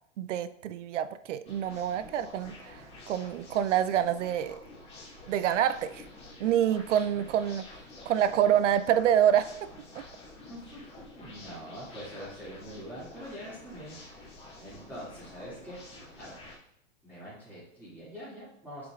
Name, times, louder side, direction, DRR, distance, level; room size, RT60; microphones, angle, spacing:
voice 1, 0.2-4.6 5.3-6.0 6.4-7.6 8.1-9.7, right 10 dB, 70° right, 13 dB, 0.5 m, -27 dB
sound 1, 1.4-16.6, left 2 dB, 15° left, 1.9 m, -49 dB
voice 2, 10.5-13.9 14.6-15.8 16.2-16.5 17.0-18.9, equal, 5° right, -13 dB, 2.3 m, -44 dB
7.1 x 6.3 x 2.4 m, 0.74 s
hypercardioid pair, 145°, 39 cm